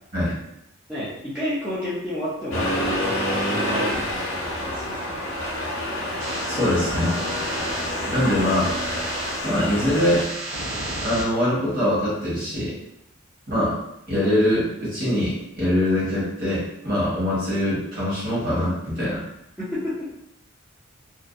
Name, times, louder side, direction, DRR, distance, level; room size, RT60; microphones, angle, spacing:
voice 1, 0.9-5.3 19.6-20.1, left 1 dB, 5° right, -11 dB, 0.4 m, -31 dB
Accelerating revving vroom, 2.5-10.3, left 1 dB, 65° left, 0.6 m, -27 dB
sound 1, 6.2-11.2, right 1 dB, 75° right, 0.6 m, -33 dB
voice 2, 6.5-7.1 8.1-8.7 9.4-10.2 11.0-12.7 13.5-13.8 14.1-19.2, left 1 dB, 40° right, -8 dB, 1.2 m, -23 dB
2.5 x 2.2 x 2.3 m, 0.83 s
head